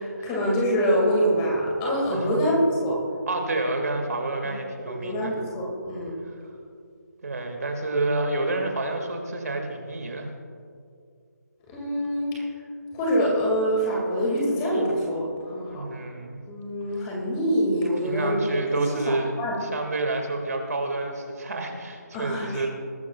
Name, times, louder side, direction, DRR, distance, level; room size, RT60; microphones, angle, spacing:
voice 1, 0.0-3.0 4.4-4.5 4.9-6.1 11.7-12.4 12.9-15.8 16.5-18.4 18.7-18.8 19.4-19.6 22.1-22.7, equal, 15° left, -3 dB, 2.1 m, -25 dB
voice 2, 2.1-2.4 3.3-5.3 7.2-10.3 15.7-16.4 18.0-19.3 19.6-22.7, right 2 dB, 60° right, 3 dB, 2.0 m, -29 dB
19.5 x 13.0 x 2.3 m, 2.3 s
figure-of-eight pair, 165°, 9 cm